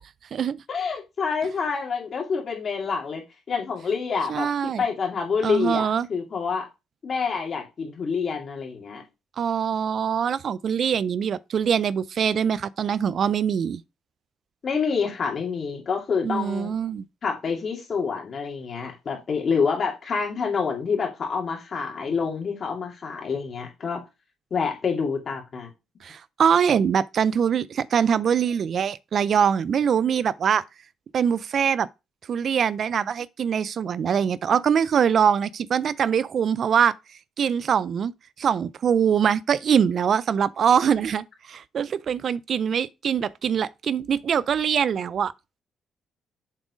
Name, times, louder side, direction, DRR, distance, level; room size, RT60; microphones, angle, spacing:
voice 1, 0.7-3.2 3.5-6.7 7.0-9.0 14.6-16.7 17.2-24.0 24.5-25.7, left 5 dB, 45° left, 2.5 m, -27 dB
voice 2, 4.3-4.8 5.4-6.1 9.4-13.8 16.2-17.1 26.0-30.6 31.1-31.9 32.3-36.9 37.4-38.1 38.4-45.3, right 7 dB, 55° right, 0.3 m, -23 dB
7.4 x 3.8 x 4.9 m
cardioid pair, 90°, 0 cm